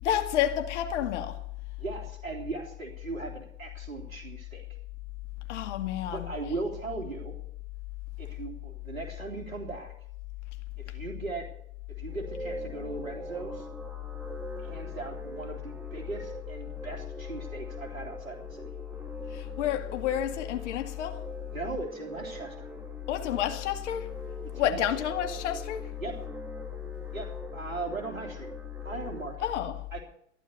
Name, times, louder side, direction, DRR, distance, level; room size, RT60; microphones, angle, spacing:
voice 1, 0.0-1.4 5.5-6.3 19.3-21.2 23.1-24.1 24.5-25.9 29.4-29.8, left 11 dB, 60° left, 2.2 m, -29 dB
voice 2, 1.8-4.8 6.1-7.3 8.2-9.9 10.8-11.5 12.0-13.7 14.6-18.7 21.5-22.7 24.5-24.9 26.0-26.2 27.1-28.5 28.8-29.5 29.9-30.0, right 3 dB, 75° right, 3.4 m, -38 dB
sound 1, 12.1-29.2, right 2 dB, 5° right, 2.2 m, -44 dB
14.5 x 11.0 x 7.2 m
figure-of-eight pair, 90°, 40 cm